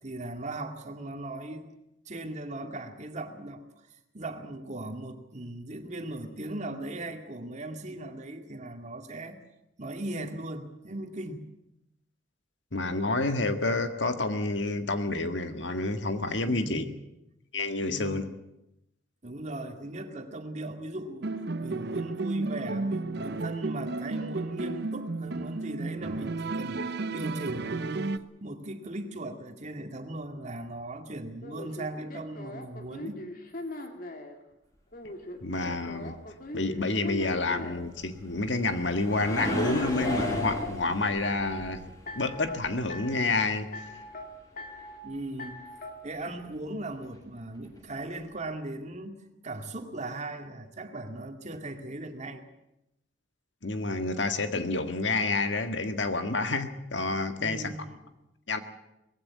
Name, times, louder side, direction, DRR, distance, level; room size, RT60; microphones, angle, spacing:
voice 1, 0.0-1.7 2.1-3.6 4.1-9.4 9.8-11.5 16.4-17.1 17.8-18.3 19.2-21.3 21.6-33.2 45.0-45.6 46.0-49.2 49.4-52.4 57.4-58.0, right 1 dB, 40° right, 6 dB, 2.2 m, -38 dB
voice 2, 12.7-16.8 17.5-18.2 35.4-36.1 36.5-41.8 42.2-43.7 53.6-57.7 58.5-58.6, left 3 dB, 70° left, 8 dB, 1.8 m, -29 dB
sound 1, 21.2-28.2, right 3 dB, 60° right, 0.8 m, -32 dB
sound 2, 31.4-34.4 34.9-37.9 39.1-40.8 41.2-41.7 42.1-42.6 42.9-43.4 43.7-44.3 44.6-45.0 45.4-45.9, left 2 dB, 50° left, 2.6 m, -39 dB
sound 3, 37.9-43.2 47.0-47.2 47.8-47.9, equal, 20° left, 7.3 m, -35 dB
20.0 x 16.0 x 9.6 m, 0.88 s
head